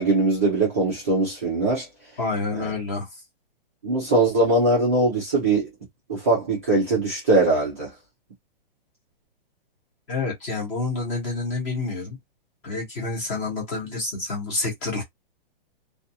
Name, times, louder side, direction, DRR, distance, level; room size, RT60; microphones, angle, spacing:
voice 1, 0.0-1.9 2.5-2.7 3.8-5.7 6.1-7.9, right 2 dB, 15° right, 0.4 m, -21 dB
voice 2, 2.2-3.2 10.1-12.2 12.6-15.0, left 3 dB, 15° left, 0.8 m, -28 dB
2.4 x 2.3 x 2.6 m
hypercardioid pair, 175°, 29 cm